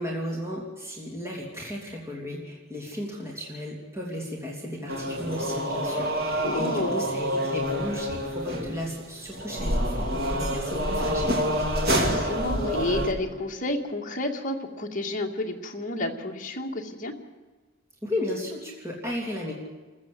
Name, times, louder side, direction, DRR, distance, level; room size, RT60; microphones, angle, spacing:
voice 1, 0.0-11.4 18.0-19.5, left 1 dB, 15° right, -2 dB, 2.9 m, -34 dB
sound 1, 4.9-13.1, equal, 50° right, 2.7 m, -27 dB
voice 2, 6.4-7.0 11.9-17.1, left 1 dB, 40° left, 1 dB, 2.2 m, -31 dB
27.5 x 14.5 x 8.0 m, 1.3 s
head